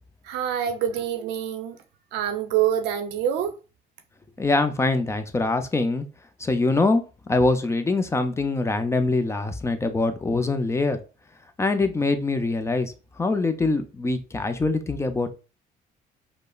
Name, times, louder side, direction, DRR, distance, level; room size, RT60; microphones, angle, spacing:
voice 1, 0.2-1.8 2.1-3.5, right 9 dB, 90° right, 0.6 m, -26 dB
voice 2, 4.4-6.0 6.4-7.0 7.3-11.0 11.6-15.3, left 3 dB, 15° left, 0.4 m, -23 dB
5.1 x 2.0 x 2.3 m
cardioid pair, 110°, 17 cm